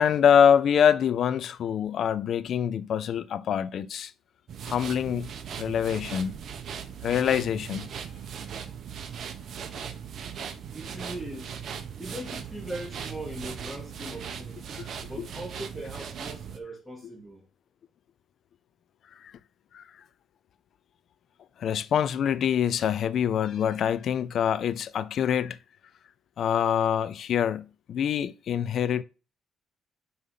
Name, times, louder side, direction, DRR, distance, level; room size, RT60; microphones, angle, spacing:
voice 1, 0.0-4.1 4.7-5.3 5.6-6.4 7.0-7.9 14.7-14.9 15.2-15.3 19.2-19.3 19.7-19.8 21.6-25.6 26.4-29.0, left 8 dB, 60° left, 0.5 m, -25 dB
sound 1, 4.5-16.6, right 7 dB, 60° right, 1.1 m, -39 dB
voice 2, 10.7-11.6 12.0-14.7 15.1-17.4, right 1 dB, ahead, 2.8 m, -40 dB
5.6 x 4.9 x 5.7 m
cardioid pair, 110°, 0 cm